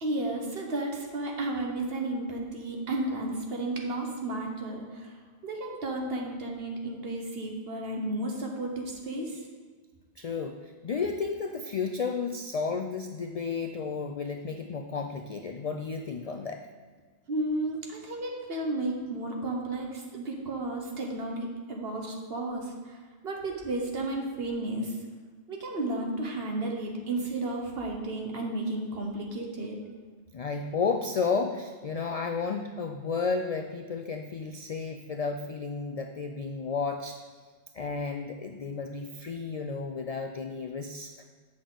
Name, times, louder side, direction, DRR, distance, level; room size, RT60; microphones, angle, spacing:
voice 1, 0.0-5.2 5.4-9.4 17.3-25.0 25.5-29.8, right 2 dB, 65° right, 1 dB, 1.4 m, -33 dB
voice 2, 10.2-16.6 30.3-37.2 37.7-41.1, left 5 dB, 60° left, 5 dB, 0.4 m, -32 dB
8.3 x 6.4 x 3.9 m, 1.5 s
omnidirectional pair, 1.1 m